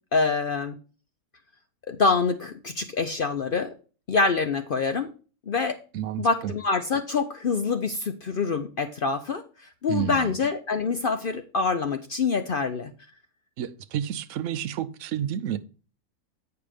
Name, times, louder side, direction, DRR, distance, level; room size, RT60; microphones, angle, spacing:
voice 1, 0.1-0.8 1.9-3.7 4.1-5.1 5.5-5.8 6.2-9.4 9.8-12.9, left 4 dB, 65° left, 7 dB, 0.5 m, -25 dB
voice 2, 5.9-6.5 9.9-10.3 13.6-15.6, right 10 dB, 65° right, 10 dB, 0.9 m, -30 dB
8.8 x 4.8 x 5.0 m, 0.36 s
omnidirectional pair, 1.6 m